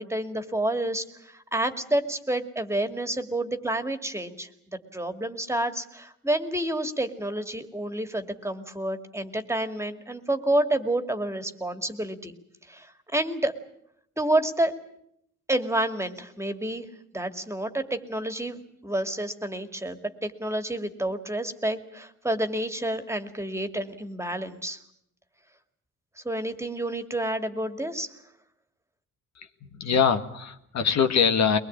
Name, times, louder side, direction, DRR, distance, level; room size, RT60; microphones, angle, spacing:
voice 1, 0.0-4.5 4.9-12.3 12.7-13.5 14.2-14.7 15.5-16.8 17.1-24.8 26.2-28.1, right 1 dB, 10° right, 8 dB, 2.3 m, -29 dB
voice 2, 29.4-31.6, left 6 dB, 65° left, 7 dB, 1.8 m, -23 dB
22.5 x 21.0 x 8.7 m, 0.74 s
cardioid pair, 90°, 30 cm